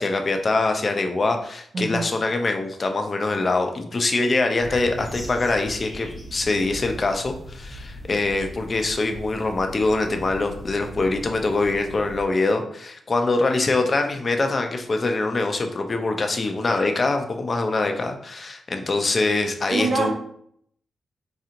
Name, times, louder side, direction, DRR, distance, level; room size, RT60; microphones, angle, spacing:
voice 1, 0.0-20.1, left 3 dB, 40° left, 5 dB, 0.5 m, -24 dB
voice 2, 1.7-2.1 19.7-20.1, right 3 dB, 45° right, 0 dB, 0.5 m, -24 dB
sound 1, 4.6-12.3, equal, 10° left, 0.8 m, -39 dB
4.0 x 2.8 x 2.5 m, 0.67 s
cardioid pair, 85°, 0 cm